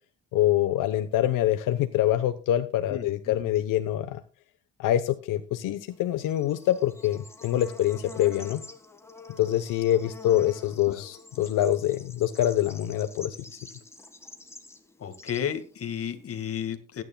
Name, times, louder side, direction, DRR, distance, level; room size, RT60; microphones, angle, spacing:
voice 1, 0.3-4.2 4.8-8.6 9.4-13.6, left 12 dB, 75° left, 9 dB, 1.0 m, -25 dB
voice 2, 2.9-3.4 10.9-11.1 15.0-17.0, left 9 dB, 45° left, 9 dB, 1.9 m, -33 dB
Bird / Insect, 5.9-16.5, left 3 dB, 10° left, 1.7 m, -47 dB
21.0 x 9.6 x 2.3 m, 0.33 s
cardioid pair, 110°, 32 cm